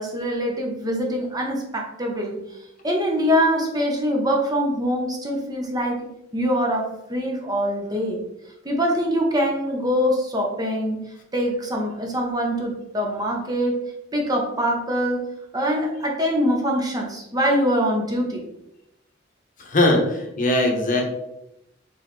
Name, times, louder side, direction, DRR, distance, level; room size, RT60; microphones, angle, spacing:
voice 1, 0.0-2.4 2.8-6.0 6.3-8.2 8.6-11.0 11.3-13.7 14.1-15.2 15.5-18.4, equal, 20° right, 0 dB, 0.7 m, -23 dB
voice 2, 19.6-21.1, left 1 dB, 45° left, 1 dB, 0.9 m, -20 dB
4.4 x 3.3 x 3.0 m, 0.85 s
head